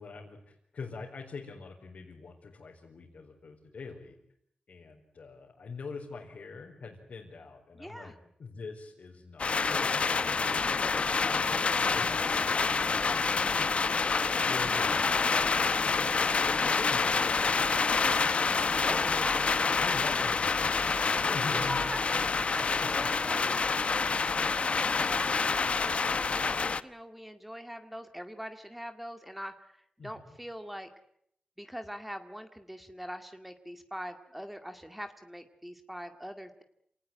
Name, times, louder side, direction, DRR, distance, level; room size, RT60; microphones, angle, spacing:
voice 1, 0.0-4.2 4.7-8.1 8.4-12.9 13.4-15.0 15.8-18.2 18.7-19.3 19.8-22.2 22.6-23.3 30.0-30.3, left 4 dB, 70° left, -1 dB, 4.7 m, -44 dB
voice 2, 7.7-8.2 18.8-20.0 21.5-30.9 31.6-36.6, equal, 5° right, 7 dB, 2.0 m, -42 dB
sound 1, 9.4-26.8, left 4 dB, 50° left, 0.9 m, -27 dB
28.0 x 19.0 x 9.1 m, 0.71 s
wide cardioid pair, 125°, 3 cm